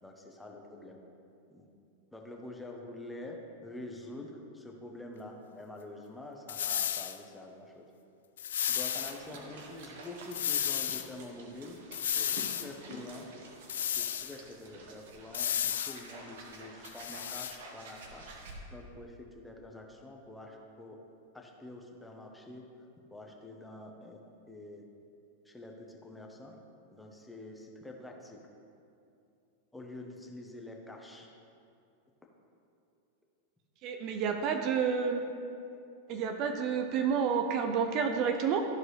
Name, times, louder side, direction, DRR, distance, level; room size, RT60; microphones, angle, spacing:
voice 1, 0.0-1.0 1.5-1.7 2.1-7.9 8.7-11.8 12.1-13.3 13.8-18.3 18.7-21.0 21.3-22.6 23.1-24.8 25.4-26.5 26.9-28.4 29.7-31.3, left 2 dB, 5° left, 1 dB, 1.1 m, -47 dB
sound 1, 6.5-7.2 8.4-9.2 10.3-11.1 11.9-12.7 13.7-14.4 15.3-16.0 16.8-17.6, left 9 dB, 75° left, 0.3 m, -33 dB
sound 2, 8.6-18.5, right 2 dB, 65° right, 1.3 m, -49 dB
voice 2, 33.8-35.2 36.1-38.7, right 6 dB, 45° right, 5 dB, 0.6 m, -29 dB
14.0 x 4.6 x 3.3 m, 2.6 s
hypercardioid pair, 100°, 0 cm